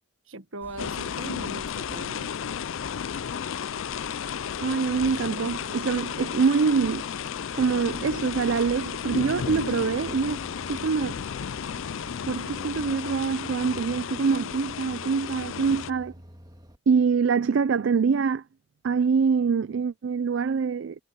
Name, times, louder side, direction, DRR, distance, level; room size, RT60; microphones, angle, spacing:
voice 1, 0.3-2.3, right 2 dB, 85° right, 1.6 m, -39 dB
sound 1, 0.6-13.0, equal, 10° left, 3.6 m, -47 dB
sound 2, 0.8-15.9, left 7 dB, 80° left, 0.4 m, -33 dB
voice 2, 4.6-7.1 7.5-10.4 10.7-11.2 12.3-16.1 16.9-18.4 18.8-21.0, right 5 dB, 70° right, 0.4 m, -24 dB
sound 3, 8.8-16.8, equal, 20° right, 3.2 m, -49 dB
head